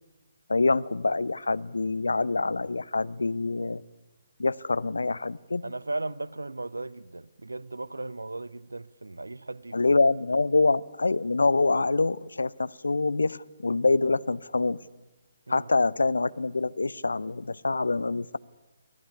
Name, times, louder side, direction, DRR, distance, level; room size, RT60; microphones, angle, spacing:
voice 1, 0.5-3.8 4.4-5.7 9.7-14.8 15.5-18.4, left 3 dB, 70° left, 0.7 m, -25 dB
voice 2, 5.6-9.9 15.5-15.7, right 2 dB, 75° right, 0.8 m, -36 dB
23.5 x 16.5 x 9.6 m
figure-of-eight pair, 135°, 0 cm